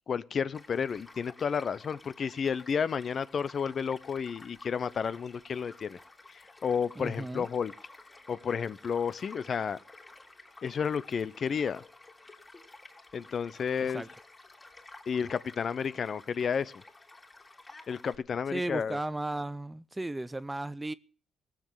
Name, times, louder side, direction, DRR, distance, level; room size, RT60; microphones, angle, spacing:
voice 1, 0.1-6.0 6.6-7.7 8.3-9.8 10.6-11.8 13.1-14.0 15.1-16.7 17.9-19.0, left 6 dB, 50° left, 0.8 m, -31 dB
Child speech kid speaking / Stream / Car passing by, 0.5-18.2, left 2 dB, 20° left, 3.3 m, -53 dB
voice 2, 7.0-7.5 13.8-14.1 18.5-20.9, right 2 dB, 15° right, 0.7 m, -35 dB
18.5 x 7.6 x 7.4 m
cardioid pair, 90°, 0 cm